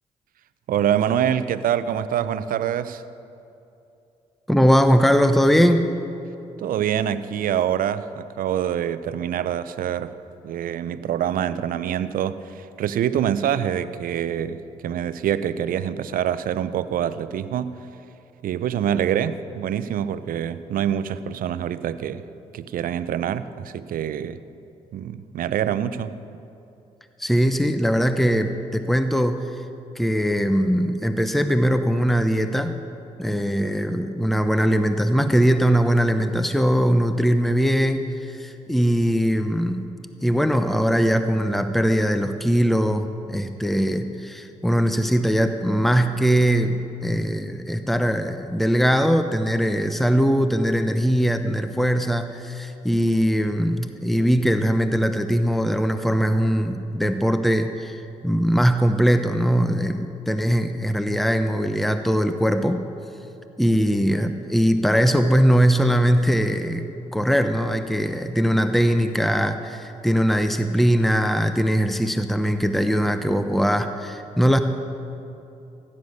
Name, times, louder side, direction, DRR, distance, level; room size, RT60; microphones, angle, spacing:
voice 1, 0.7-3.0 6.6-10.1 10.4-17.8 18.4-22.2 22.5-24.4 24.9-26.1, right 9 dB, 70° right, 14 dB, 0.7 m, -25 dB
voice 2, 4.5-6.0 27.2-29.5 29.9-32.8 33.2-39.8 40.2-62.8 63.6-66.9 67.1-74.6, equal, ahead, 8 dB, 1.0 m, -21 dB
16.0 x 10.0 x 6.7 m, 2.8 s
hypercardioid pair, 50°, 15 cm